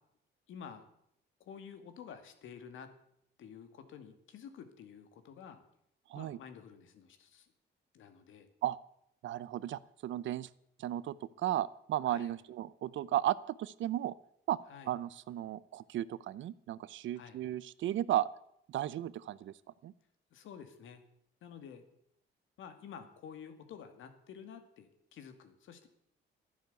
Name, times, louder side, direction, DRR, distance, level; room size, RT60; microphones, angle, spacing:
voice 1, 0.5-0.9 1.4-2.9 3.4-5.6 6.1-7.5 7.9-8.5 12.1-12.3 14.7-14.9 17.1-17.4 20.3-21.0 21.4-21.8 22.6-25.9, left 7 dB, 80° left, 8 dB, 2.2 m, -50 dB
voice 2, 9.2-10.5 10.8-14.2 14.5-14.6 14.9-18.3 18.7-19.5 19.8-19.9, right 12 dB, 70° right, 19 dB, 0.7 m, -35 dB
12.0 x 10.5 x 8.1 m, 0.72 s
cardioid pair, 90°, 20 cm